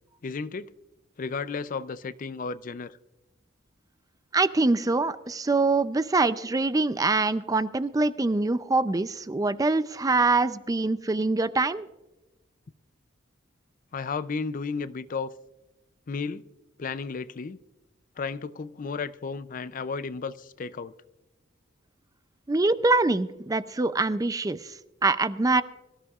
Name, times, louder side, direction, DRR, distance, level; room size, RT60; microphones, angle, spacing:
voice 1, 0.2-0.7 1.2-3.0 13.9-15.3 16.1-16.5 16.8-17.6 18.2-20.9, left 4 dB, 45° left, 0.5 m, -33 dB
voice 2, 4.3-11.9 22.5-24.7 25.0-25.6, right 3 dB, 20° right, 0.4 m, -24 dB
24.0 x 14.0 x 2.4 m
head